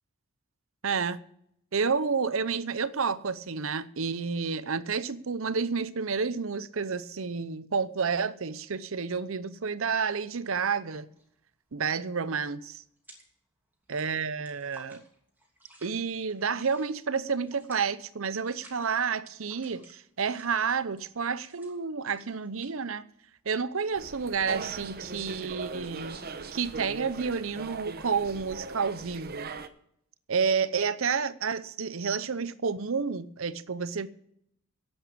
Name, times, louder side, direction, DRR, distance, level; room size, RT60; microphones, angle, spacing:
voice 1, 0.8-1.2 1.7-11.1 11.7-12.8 13.9-15.0 15.8-23.1 23.5-26.2 26.5-29.5 30.3-34.1, right 5 dB, 65° right, 0.7 m, -30 dB
sound 1, 11.1-11.4 11.7-13.5 13.7-25.3, right 1 dB, 10° right, 2.8 m, -57 dB
sound 2, 23.9-29.7, right 4 dB, 45° right, 0.9 m, -40 dB
11.0 x 8.9 x 8.6 m
head